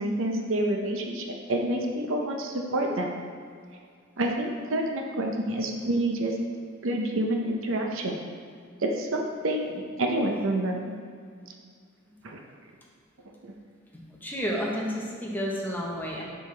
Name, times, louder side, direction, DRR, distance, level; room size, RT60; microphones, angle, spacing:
voice 1, 0.0-3.1 4.2-6.3 6.8-8.2 8.8-10.9 12.2-12.4 13.4-13.5, right 1 dB, 65° right, 2 dB, 0.7 m, -28 dB
voice 2, 13.9-16.2, equal, 10° left, -3 dB, 0.9 m, -31 dB
7.5 x 5.5 x 3.3 m, 2.2 s
head